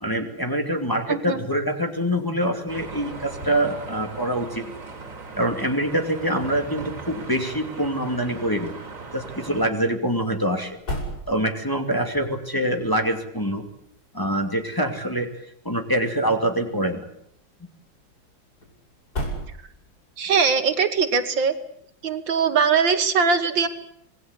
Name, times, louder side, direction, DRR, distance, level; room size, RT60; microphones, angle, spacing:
voice 1, 0.0-4.6 5.4-8.7 9.1-10.8 11.3-13.6 14.1-15.3 15.6-17.0, right 1 dB, 10° left, 3 dB, 2.5 m, -25 dB
voice 2, 1.1-1.4 20.2-21.6 22.0-23.7, right 5 dB, 70° right, 9 dB, 2.2 m, -21 dB
sound 1, 2.1-20.2, equal, 50° left, 6.4 m, -41 dB
sound 2, 2.7-9.7, right 4 dB, 40° right, 3.8 m, -38 dB
26.5 x 19.5 x 8.3 m, 0.72 s
omnidirectional pair, 2.2 m